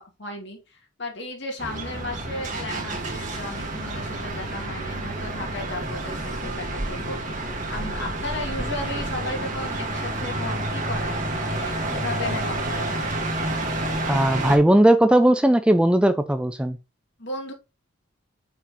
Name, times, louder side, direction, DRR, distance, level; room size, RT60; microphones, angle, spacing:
voice 1, 0.0-13.0 17.2-17.5, left 2 dB, 60° left, 2.6 m, -35 dB
sound 1, 1.6-14.6, right 2 dB, 40° right, 1.8 m, -29 dB
voice 2, 14.1-16.8, right 1 dB, 5° right, 0.4 m, -18 dB
6.7 x 5.9 x 3.1 m
head